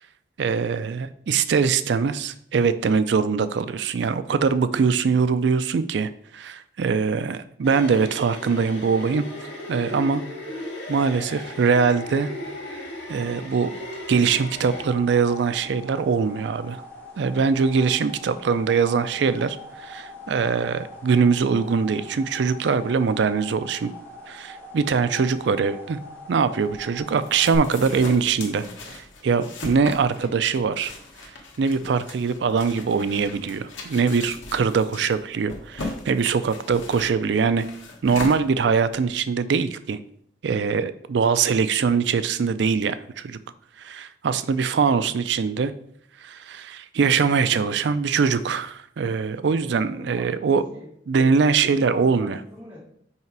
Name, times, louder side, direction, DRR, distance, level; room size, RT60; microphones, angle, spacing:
voice 1, 0.4-10.2 10.9-12.3 13.1-13.7 14.1-16.8 17.2-23.9 24.3-26.0 26.3-30.9 31.2-37.7 38.0-40.0 40.4-43.4 43.8-45.7 46.2-50.6 51.1-52.4, right 5 dB, 65° right, 13 dB, 0.4 m, -22 dB
sound 1, 7.6-14.9, left 1 dB, 70° left, 1.9 m, -36 dB
sound 2, 14.4-27.6, left 1 dB, 10° left, 1.4 m, -42 dB
sound 3, 26.6-39.1, left 2 dB, 90° left, 1.4 m, -39 dB
voice 2, 49.6-52.8, left 1 dB, 5° right, -9 dB, 2.1 m, -43 dB
5.6 x 4.8 x 4.6 m, 0.67 s
head